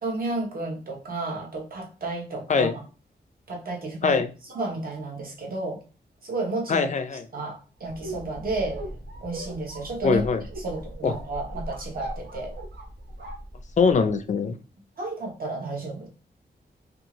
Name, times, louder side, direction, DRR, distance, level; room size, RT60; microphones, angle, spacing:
voice 1, 0.0-2.7 3.5-4.2 4.5-5.8 6.2-6.9 7.3-8.8 9.2-10.2 10.6-12.5 15.0-16.1, right 2 dB, 55° right, -1 dB, 0.9 m, -32 dB
voice 2, 6.7-7.2 10.0-10.4 11.0-11.1 13.8-14.6, left 5 dB, 45° left, 8 dB, 0.4 m, -22 dB
sound 1, 7.8-14.1, right 1 dB, 85° right, 0.8 m, -38 dB
2.6 x 2.4 x 2.9 m, 0.34 s
wide cardioid pair, 150°, 18 cm